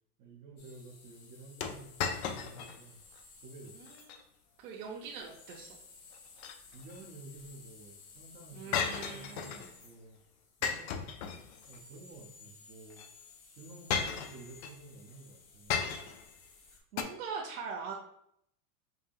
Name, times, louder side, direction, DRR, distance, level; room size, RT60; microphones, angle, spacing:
voice 1, 0.2-3.0 3.4-3.7 6.7-8.8 9.1-10.2 10.6-11.1 11.6-15.9, right 3 dB, 30° right, -5 dB, 0.6 m, -52 dB
sound 1, 0.6-16.8, left 4 dB, 80° left, 1.2 m, -57 dB
sound 2, 1.6-2.8 3.2-3.3 3.9-4.2 6.1-7.0 8.7-9.7 10.6-11.8 12.9-13.1 13.9-14.8 15.7-16.3 17.0-17.1, left 6 dB, 50° left, 0.5 m, -35 dB
voice 2, 4.6-5.7 8.5-9.6 16.9-17.9, right 5 dB, 85° right, -3 dB, 0.9 m, -42 dB
5.3 x 2.7 x 2.4 m, 0.72 s
supercardioid pair, 160°, 43 cm